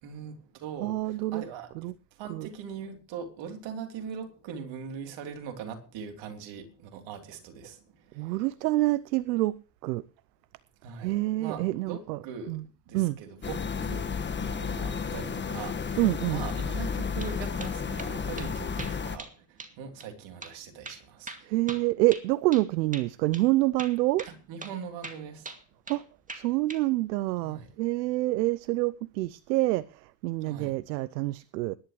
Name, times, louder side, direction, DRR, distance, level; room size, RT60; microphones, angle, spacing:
voice 1, 0.0-8.4 10.8-16.0 16.3-21.6 24.3-25.6 27.4-27.7 30.4-30.8, right 7 dB, 60° right, 3.4 m, -41 dB
voice 2, 0.8-1.4 1.8-1.9 2.3-2.5 8.2-9.6 9.8-10.1 11.0-12.2 12.5-12.6 12.9-13.2 16.0-16.4 21.5-24.3 25.9-26.0 26.3-31.8, right 18 dB, 80° right, 0.7 m, -27 dB
sound 1, 13.4-19.2, left 5 dB, 20° left, 1.5 m, -32 dB
sound 2, 17.2-17.3 17.6-18.1 18.4-18.5 18.8-19.3 19.6-19.7 20.0-20.1 20.4-20.6 20.9-22.7 22.9-23.1 23.3-23.5 23.8-24.4 24.6-24.8 25.0-26.0 26.3-26.8, right 3 dB, 15° right, 2.3 m, -42 dB
21.0 x 11.5 x 3.1 m
hypercardioid pair, 75°, 50 cm